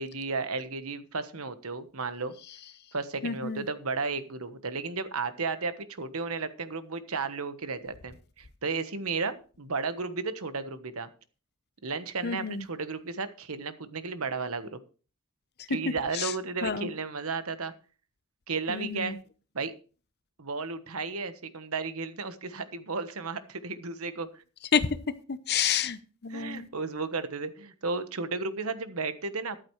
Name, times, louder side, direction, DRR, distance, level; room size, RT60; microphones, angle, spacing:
voice 1, 0.0-2.3 2.9-11.1 11.8-14.8 15.7-17.7 18.5-19.2 19.5-19.7 20.4-24.3 26.3-29.6, right 4 dB, 65° right, 11 dB, 1.2 m, -33 dB
voice 2, 3.2-3.6 12.2-12.6 16.1-16.3 16.6-16.9 18.7-19.2 24.7-24.9 25.3-26.7, left 6 dB, 45° left, 13 dB, 0.8 m, -29 dB
13.5 x 11.5 x 3.2 m, 0.37 s
head